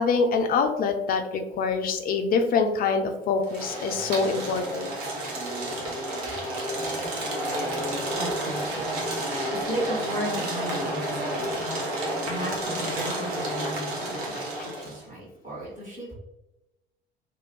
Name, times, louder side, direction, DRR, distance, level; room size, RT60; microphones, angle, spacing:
voice 1, 0.0-4.9, left 4 dB, 30° left, 6 dB, 0.4 m, -25 dB
sound 1, 3.4-15.0, right 1 dB, 50° right, 0.9 m, -30 dB
voice 2, 8.1-8.9 9.3-11.6 11.9-16.1, right 1 dB, 25° right, -6 dB, 1.4 m, -36 dB
2.8 x 2.1 x 2.9 m, 0.97 s
figure-of-eight pair, 60°, 30 cm